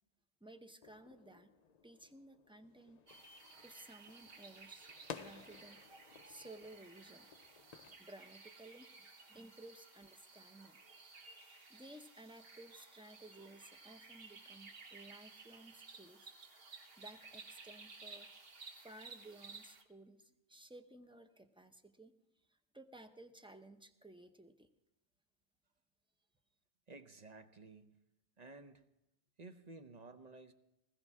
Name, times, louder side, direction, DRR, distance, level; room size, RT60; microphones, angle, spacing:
voice 1, 0.4-1.5 1.8-3.0 3.6-5.8 6.2-7.3 7.8-10.8 11.7-16.3 17.0-18.3 18.7-22.2 22.5-24.7, right 1 dB, 5° right, 7 dB, 0.6 m, -57 dB
sound 1, 0.8-8.0, left 6 dB, 50° left, 0.5 m, -55 dB
sound 2, 3.1-19.8, right 4 dB, 55° right, 1.5 m, -56 dB
voice 2, 26.9-28.0 28.4-28.9 29.4-30.5, right 3 dB, 40° right, 8 dB, 0.9 m, -54 dB
20.0 x 15.0 x 3.6 m, 0.92 s
omnidirectional pair, 1.2 m